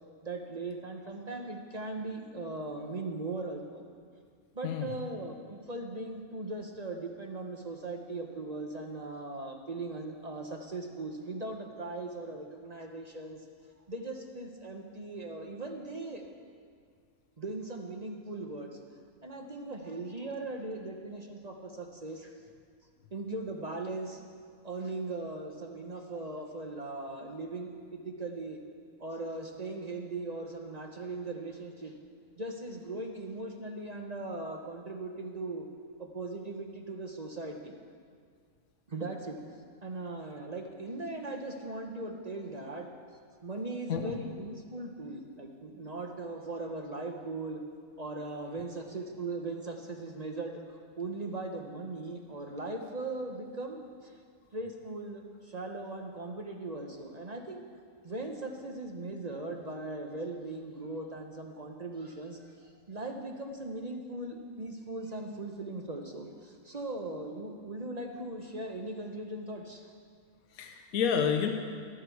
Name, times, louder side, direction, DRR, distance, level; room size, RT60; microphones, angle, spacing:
voice 1, 0.2-3.8 4.5-13.4 13.9-16.2 17.4-18.8 19.2-22.4 23.1-24.3 24.6-28.6 29.0-32.0 32.4-35.7 36.0-37.7 38.9-39.4 39.8-42.9 43.4-47.6 48.0-54.2 54.5-57.6 58.0-69.9, right 2 dB, 35° right, 3 dB, 0.8 m, -39 dB
voice 2, 70.5-71.5, left 7 dB, 70° left, 4 dB, 1.2 m, -29 dB
12.5 x 11.5 x 4.6 m, 2.1 s
omnidirectional pair, 1.6 m